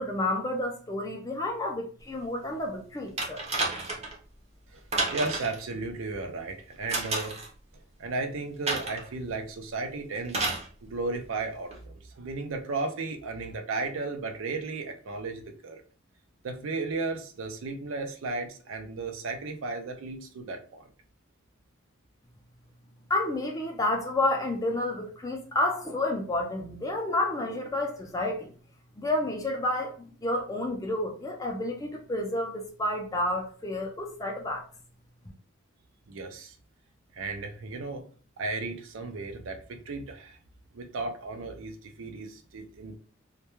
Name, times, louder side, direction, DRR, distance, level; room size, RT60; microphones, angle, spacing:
voice 1, 0.0-3.4 23.1-28.5 29.0-34.7, left 1 dB, 15° left, 0.4 m, -30 dB
sound 1, 3.2-4.2 4.9-5.6 6.9-7.5 8.7-9.1 10.3-10.7 11.7-11.8, right 2 dB, 30° right, 0.6 m, -30 dB
voice 2, 5.1-7.4 8.0-10.5 10.8-15.8 16.4-20.8 36.1-36.6 37.1-38.0 38.4-40.4 40.7-43.0, right 3 dB, 75° right, 0.4 m, -34 dB
2.2 x 2.1 x 2.9 m
head